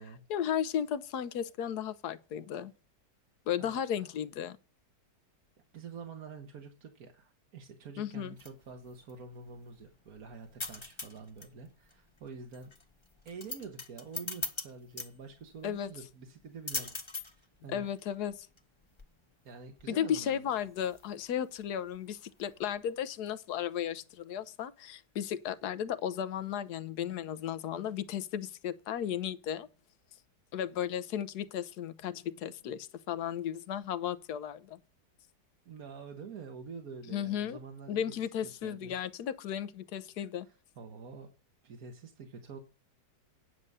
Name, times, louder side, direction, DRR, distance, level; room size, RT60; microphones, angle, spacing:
voice 1, 0.3-2.7 3.5-4.6 8.0-8.3 15.6-15.9 17.7-18.5 19.9-29.7 30.5-34.8 37.1-37.6 37.9-40.5, left 9 dB, 70° left, 1.3 m, -35 dB
voice 2, 5.7-12.7 13.2-17.0 17.3-17.9 19.4-20.4 35.6-38.2 38.6-39.0 40.5-41.3 41.6-42.6, right 5 dB, 60° right, 1.6 m, -47 dB
sound 1, 8.1-22.9, left 3 dB, 20° left, 1.1 m, -44 dB
9.8 x 6.8 x 6.7 m
omnidirectional pair, 1.8 m